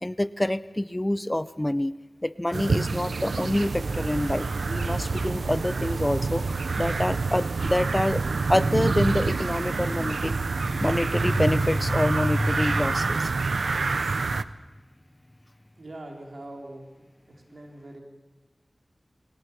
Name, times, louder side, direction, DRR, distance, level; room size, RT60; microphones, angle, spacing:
voice 1, 0.0-1.9 2.2-6.4 6.8-8.2 8.5-10.4 10.7-13.3, left 1 dB, 20° left, 16 dB, 0.6 m, -26 dB
sound 1, 2.5-14.4, right 4 dB, 90° right, 0.6 m, -27 dB
voice 2, 15.8-18.0, right 1 dB, 75° right, 2 dB, 3.4 m, -43 dB
20.5 x 18.5 x 7.0 m, 1.2 s
wide cardioid pair, 50°, 0 cm